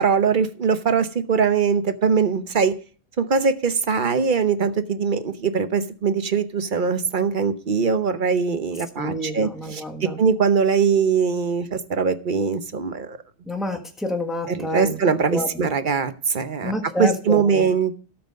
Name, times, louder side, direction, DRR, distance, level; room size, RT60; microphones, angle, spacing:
voice 1, 0.0-2.8 3.2-13.2 14.5-16.7 17.0-18.0, right 6 dB, 50° right, 11 dB, 1.0 m, -22 dB
voice 2, 9.0-10.2 13.5-15.0 15.3-15.7 16.6-17.7, left 1 dB, ahead, 3 dB, 1.4 m, -28 dB
13.0 x 5.9 x 5.3 m, 0.38 s
omnidirectional pair, 1.2 m